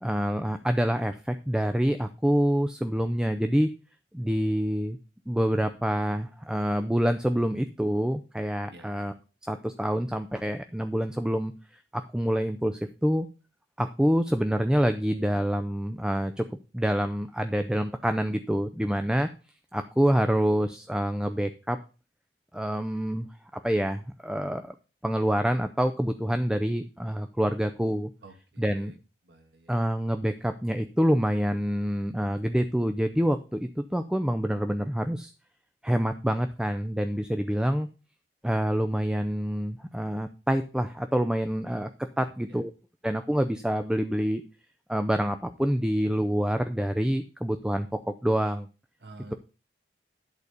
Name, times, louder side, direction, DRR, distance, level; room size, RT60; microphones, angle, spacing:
voice 1, 0.0-3.7 4.1-5.0 5.3-9.1 9.4-11.5 11.9-13.3 13.8-16.4 16.7-19.3 19.7-21.8 22.5-23.3 23.6-24.7 25.0-28.1 28.6-28.9 29.7-35.3 35.8-37.9 38.4-41.9 42.2-42.7 43.0-44.4 44.9-48.7, equal, 5° right, 7 dB, 0.4 m, -26 dB
voice 2, 8.7-9.0 28.2-29.0 29.2-29.9 42.2-42.6 49.0-49.3, right 2 dB, 70° right, 6 dB, 1.5 m, -50 dB
11.0 x 4.1 x 6.6 m, 0.34 s
head